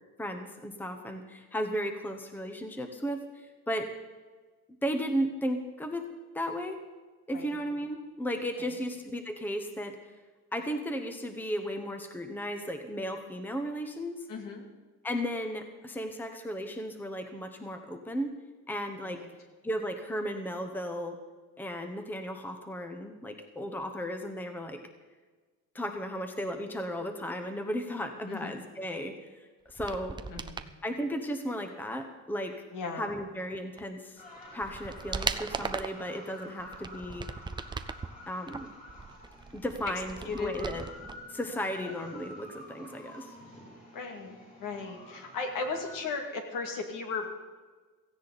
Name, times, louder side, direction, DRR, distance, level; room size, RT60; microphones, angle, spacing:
voice 1, 0.2-3.9 4.8-6.1 6.3-6.8 7.3-10.0 10.5-14.3 15.0-18.3 18.7-19.3 19.6-21.2 21.6-24.8 25.7-30.2 30.8-32.6 33.0-34.2 34.5-37.3 38.3-38.7 39.5-40.8 41.3-43.4, equal, 5° left, 6 dB, 0.9 m, -35 dB
voice 2, 14.3-14.7 19.1-19.3 28.3-28.6 30.3-30.7 32.7-33.1 40.3-40.5 41.8-42.0 43.9-47.3, left 4 dB, 70° left, 4 dB, 2.4 m, -36 dB
sound 1, 29.7-30.7 33.8-33.9 34.4-36.0 36.6-38.1 38.5-41.2 41.4-41.5, right 4 dB, 15° right, 0.4 m, -38 dB
sound 2, 34.2-46.0, left 1 dB, 25° left, 5.3 m, -49 dB
16.5 x 15.5 x 4.1 m, 1.4 s
cardioid pair, 160°, 34 cm